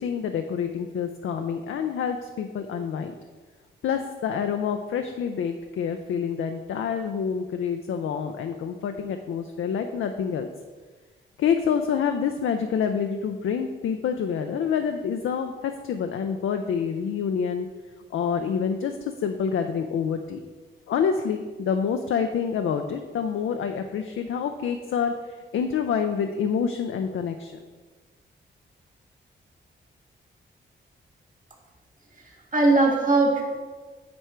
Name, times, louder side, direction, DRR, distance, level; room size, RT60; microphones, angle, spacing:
voice 1, 0.0-3.1 3.8-10.5 11.4-17.7 18.1-18.9 19.2-20.4 20.9-25.1 25.5-27.5, left 7 dB, 85° left, 6 dB, 0.4 m, -27 dB
voice 2, 32.2-33.4, right 2 dB, 40° right, 0 dB, 1.7 m, -20 dB
9.5 x 3.3 x 4.4 m, 1.4 s
cardioid pair, 65°, 20 cm